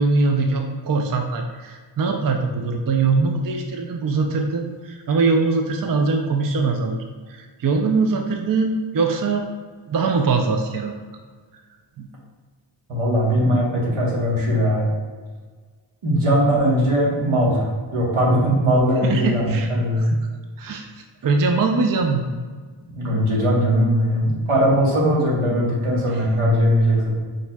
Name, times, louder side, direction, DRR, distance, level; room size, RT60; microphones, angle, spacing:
voice 1, 0.0-7.0 7.3-9.5 9.9-10.9 12.0-12.1 19.0-20.3 20.6-22.3, right 4 dB, 45° right, 4 dB, 0.4 m, -22 dB
voice 2, 12.9-14.9 16.0-20.1 22.9-27.2, equal, 80° right, -4 dB, 1.3 m, -19 dB
4.8 x 4.4 x 2.3 m, 1.5 s
wide cardioid pair, 90°, 50 cm